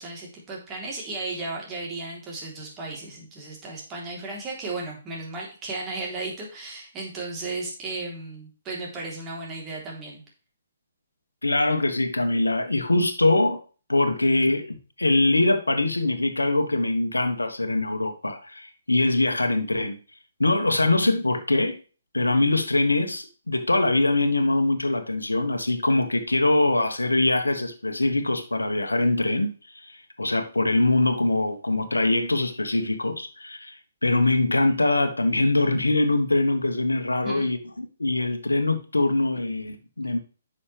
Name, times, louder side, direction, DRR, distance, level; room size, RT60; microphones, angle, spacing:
voice 1, 0.0-10.2 37.2-37.5, right 3 dB, 20° right, 3.4 m, -35 dB
voice 2, 11.4-13.6 13.9-20.0 20.4-21.8 22.1-29.5 29.9-33.8 34.0-40.2, left 2 dB, 90° left, 1.3 m, -23 dB
9.9 x 6.6 x 3.4 m
figure-of-eight pair, 135°, 0 cm